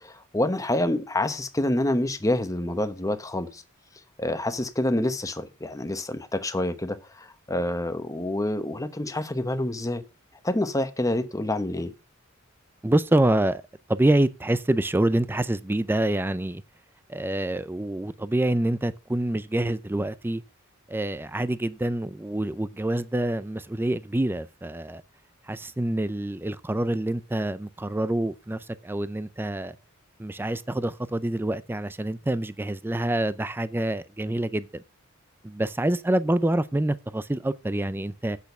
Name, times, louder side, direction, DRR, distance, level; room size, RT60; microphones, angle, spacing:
voice 1, 0.0-3.6 4.2-10.0 10.4-11.9, left 1 dB, 15° left, 1.0 m, -27 dB
voice 2, 12.8-13.6 13.9-16.6 17.1-20.4 20.9-25.0 25.5-29.8 30.2-34.8 35.4-38.4, right 1 dB, 10° right, 0.4 m, -26 dB
8.4 x 6.3 x 6.6 m
head